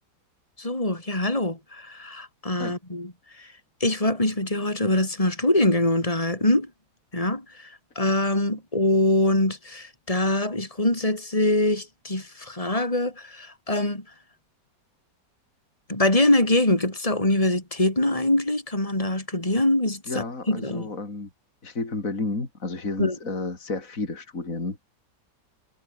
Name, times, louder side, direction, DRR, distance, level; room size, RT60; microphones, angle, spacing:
voice 1, 0.6-3.5 3.8-6.7 7.1-14.0 15.9-20.9 23.0-23.2, left 1 dB, 20° left, 5.2 m, -24 dB
voice 2, 20.1-21.3 21.6-24.9, left 3 dB, 50° left, 4.2 m, -31 dB
omnidirectional pair, 1.9 m